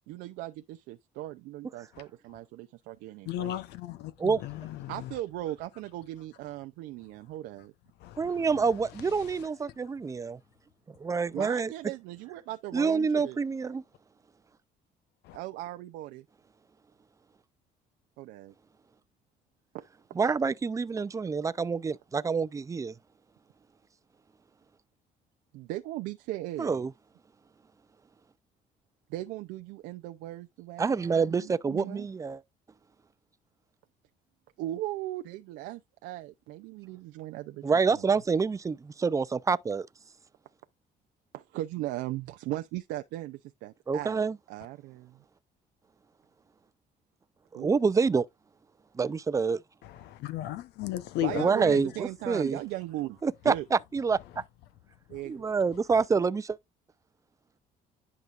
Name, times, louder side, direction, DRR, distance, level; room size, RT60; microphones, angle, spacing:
voice 1, 0.1-3.5 4.9-7.7 11.3-13.4 15.3-16.2 18.2-18.5 19.7-19.8 25.5-26.9 29.1-32.1 34.6-37.6 37.9-38.1 41.3-45.2 47.5-47.8 51.2-53.6 55.1-55.5, right 15 dB, 90° right, 0.5 m, -38 dB
voice 2, 1.9-2.4 3.2-5.2 7.0-7.7 7.9-10.0 15.2-15.4 49.8-52.0 54.0-55.2 55.7-56.1, left 14 dB, 85° left, 0.9 m, -38 dB
voice 3, 8.2-10.4 11.0-11.7 12.7-13.8 20.2-22.9 26.6-26.9 30.8-32.4 37.6-39.9 43.9-44.4 47.5-48.3 49.0-49.6 51.4-52.6 53.2-54.2 55.3-56.6, right 5 dB, 20° right, 0.5 m, -27 dB
11.0 x 5.0 x 2.5 m
cardioid pair, 110°, 17 cm